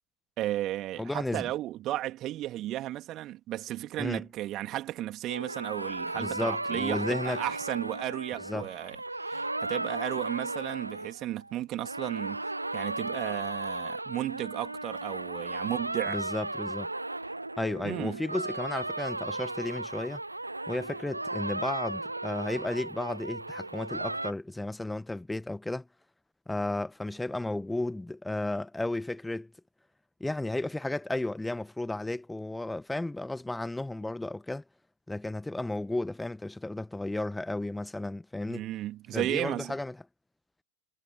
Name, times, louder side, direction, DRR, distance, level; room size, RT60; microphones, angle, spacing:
voice 1, 0.4-12.4 12.7-16.2 17.8-18.2 38.5-39.8, right 14 dB, 35° right, 2.8 m, -34 dB
voice 2, 1.0-1.5 4.0-4.2 6.2-7.4 8.5-8.7 16.1-16.9 17.6-20.2 20.7-25.9 26.5-29.5 30.2-34.6 35.1-38.6 39.1-40.0, left 2 dB, 5° left, 1.2 m, -33 dB
sound 1, 5.3-11.5 11.8-24.3, right 2 dB, 85° right, 0.9 m, -35 dB
figure-of-eight pair, 90°, 0 cm